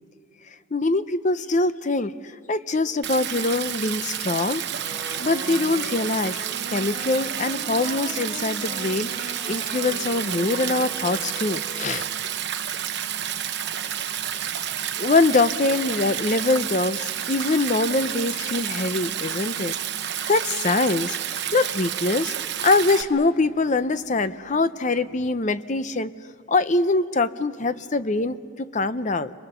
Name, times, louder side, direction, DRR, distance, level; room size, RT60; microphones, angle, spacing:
voice 1, 0.7-2.1 2.5-4.6 5.2-6.4 6.7-12.1 15.0-19.7 20.3-21.2 21.5-22.3 22.6-26.1 26.5-29.3, left 3 dB, 35° left, 13 dB, 0.6 m, -23 dB
Stream, 3.0-23.0, right 9 dB, 55° right, 1.0 m, -30 dB
Wind instrument woodwind instrument, 4.8-12.0, equal, 85° left, 6.2 m, -39 dB
29.5 x 23.0 x 6.9 m, 2.1 s
head